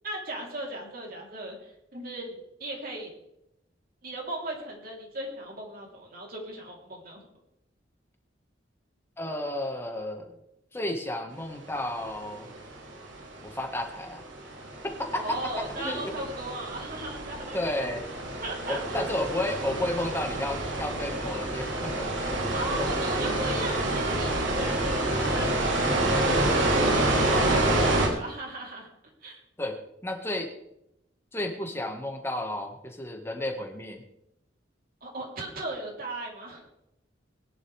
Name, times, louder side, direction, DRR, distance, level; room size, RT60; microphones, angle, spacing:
voice 1, 0.0-3.1 4.0-7.2 15.1-18.0 18.4-19.1 22.5-28.9 29.2-29.4 35.0-36.7, right 1 dB, 50° right, -1 dB, 3.8 m, -37 dB
voice 2, 9.2-10.3 10.7-12.5 13.4-14.2 14.8-15.4 15.8-16.1 17.5-18.0 18.7-22.9 27.3-27.8 29.6-29.8 30.0-30.5 31.3-34.0, left 1 dB, 15° left, 3 dB, 1.8 m, -32 dB
sound 1, 12.0-28.1, right 1 dB, 90° right, 3.5 m, -28 dB
20.5 x 11.0 x 3.6 m, 0.82 s
head